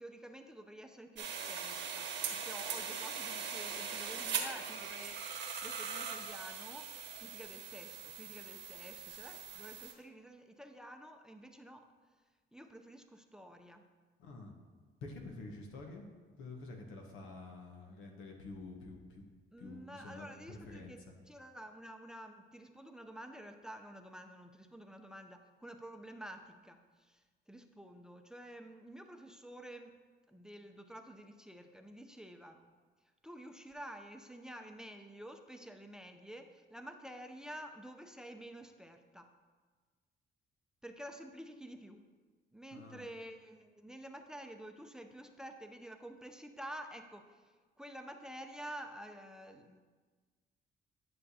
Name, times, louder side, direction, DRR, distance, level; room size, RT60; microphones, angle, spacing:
voice 1, 0.0-11.9 12.5-13.8 19.5-30.0 30.3-32.6 33.2-39.3 40.8-42.1 42.5-47.5 47.8-49.8, right 1 dB, 5° right, 6 dB, 0.6 m, -50 dB
sound 1, 1.2-9.9, right 6 dB, 65° right, 1.2 m, -41 dB
voice 2, 14.2-14.5 15.0-16.1 16.4-19.2 19.6-21.0 42.7-43.0, left 3 dB, 90° left, 2 dB, 1.2 m, -48 dB
11.0 x 6.5 x 2.8 m, 1.4 s
cardioid pair, 90°, 20 cm